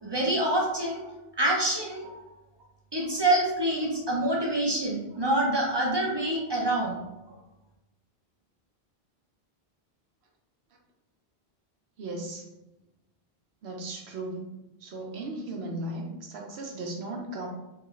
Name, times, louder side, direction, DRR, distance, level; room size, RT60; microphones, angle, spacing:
voice 1, 0.0-1.0 1.4-2.1 2.9-7.0, right 1 dB, 30° right, -3 dB, 0.5 m, -26 dB
voice 2, 12.0-12.4 13.6-14.4 14.8-17.5, right 2 dB, 85° right, 1 dB, 0.9 m, -36 dB
2.9 x 2.4 x 3.0 m, 0.97 s
omnidirectional pair, 1.0 m